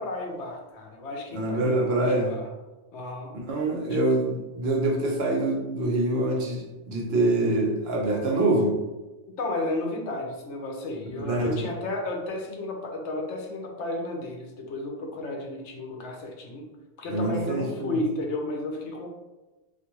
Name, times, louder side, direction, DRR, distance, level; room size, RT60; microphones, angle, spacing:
voice 1, 0.0-2.5 2.9-3.3 3.9-4.0 9.4-16.7 17.0-19.1, left 2 dB, 70° left, 1 dB, 0.9 m, -33 dB
voice 2, 1.3-2.3 3.5-8.7 11.2-11.6 17.1-18.0, right 2 dB, 60° right, -1 dB, 0.9 m, -25 dB
3.5 x 2.6 x 2.9 m, 1.1 s
omnidirectional pair, 1.2 m